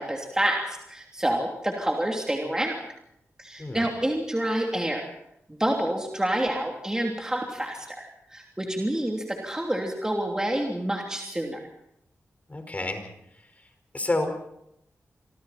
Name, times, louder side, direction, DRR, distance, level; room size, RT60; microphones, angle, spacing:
voice 1, 0.0-2.8 3.4-5.0 5.6-11.6, right 1 dB, 15° right, 0 dB, 3.2 m, -28 dB
voice 2, 12.5-13.1 13.9-14.4, left 2 dB, 30° left, 6 dB, 5.0 m, -29 dB
26.5 x 25.5 x 4.4 m, 0.78 s
wide cardioid pair, 85°, 5 cm